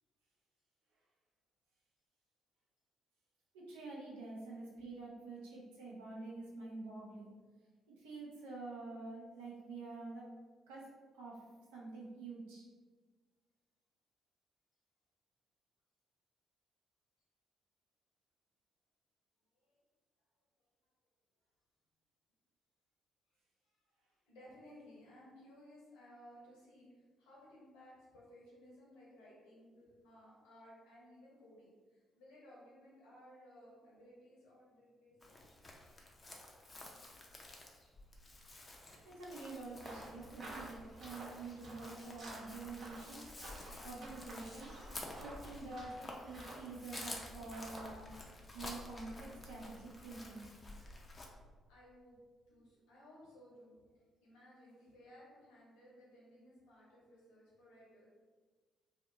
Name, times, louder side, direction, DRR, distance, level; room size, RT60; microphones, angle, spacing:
voice 1, 3.5-7.3 8.0-10.3 10.7-11.4 11.7-12.7 39.0-43.2 43.8-44.7 45.1-48.1 48.5-50.5, right 3 dB, 75° right, -4 dB, 0.5 m, -47 dB
voice 2, 23.6-23.9 24.3-26.9 27.2-35.4 51.2-51.3 51.7-52.2 52.5-58.1, equal, 70° left, -6 dB, 0.9 m, -59 dB
Chirp tweet, 35.2-51.3, left 2 dB, 30° left, 0.5 m, -51 dB
sound 1, 39.8-47.9, right 2 dB, 55° right, 0.9 m, -53 dB
2.5 x 2.3 x 2.6 m, 1.4 s
figure-of-eight pair, 45°, 0 cm